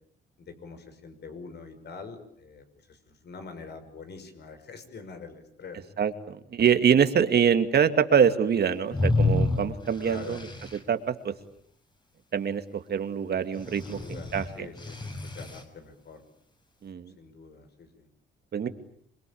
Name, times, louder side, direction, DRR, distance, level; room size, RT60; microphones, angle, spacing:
voice 1, 0.4-5.8 10.0-10.4 13.8-16.2 17.2-18.1, left 4 dB, 55° left, 8 dB, 6.0 m, -45 dB
voice 2, 6.0-11.3 12.3-14.7 16.8-17.1 18.5-18.7, right 7 dB, 55° right, 9 dB, 2.3 m, -25 dB
sound 1, 8.9-10.8 13.6-15.6, left 2 dB, 20° left, 6.1 m, -28 dB
28.0 x 22.5 x 8.7 m, 0.68 s
cardioid pair, 90°, 20 cm